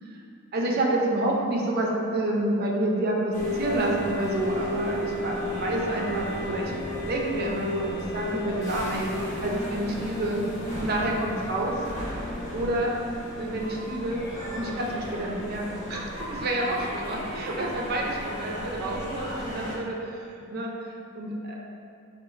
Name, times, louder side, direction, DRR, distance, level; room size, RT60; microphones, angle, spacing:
voice 1, 0.5-6.7 7.1-9.1 9.4-10.4 10.8-11.8 12.5-12.9 13.4-14.2 14.5-15.6 15.9-20.2 20.5-20.7 21.1-21.6, right 1 dB, 50° right, -1 dB, 0.4 m, -28 dB
sound 1, 3.3-19.7, equal, 40° left, 1.0 m, -33 dB
3.9 x 2.4 x 2.4 m, 2.5 s
head